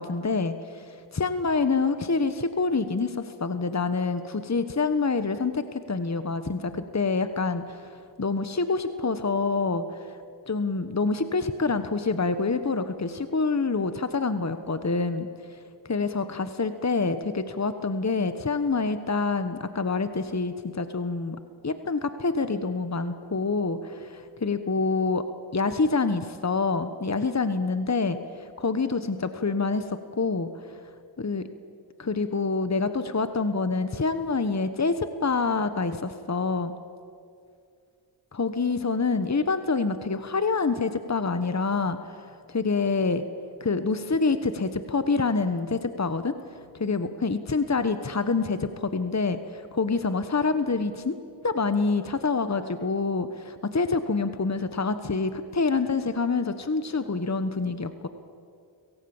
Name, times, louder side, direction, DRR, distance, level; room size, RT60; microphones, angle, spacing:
voice 1, 0.0-0.9 1.1-7.9 8.2-10.1 10.5-15.3 15.9-21.4 21.6-25.3 25.5-30.5 31.2-31.4 32.0-36.7 38.3-43.2 43.6-46.3 46.7-51.2 51.4-58.1, left 4 dB, 35° left, 10 dB, 1.3 m, -26 dB
29.0 x 18.0 x 7.2 m, 2.3 s
cardioid pair, 40°, 50 cm